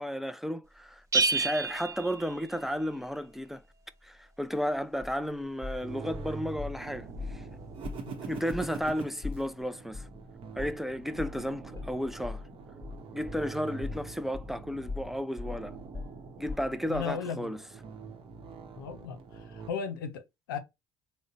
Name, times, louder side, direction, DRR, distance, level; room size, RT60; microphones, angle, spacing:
voice 1, 0.0-3.6 4.0-7.4 8.2-10.1 10.6-12.4 13.1-15.7 16.4-17.6, equal, 5° right, 0.4 m, -33 dB
Bell, 1.1-3.0, right 4 dB, 30° right, 0.9 m, -30 dB
sound 1, 5.0-6.8 7.2-7.4 7.8-8.0 8.3-14.6 14.9-17.1, left 4 dB, 30° left, 1.2 m, -41 dB
sound 2, 5.8-19.7, right 5 dB, 55° right, 0.8 m, -44 dB
voice 2, 16.9-17.5 18.8-20.6, left 6 dB, 90° left, 0.5 m, -36 dB
3.8 x 2.1 x 3.9 m
hypercardioid pair, 55°, 11 cm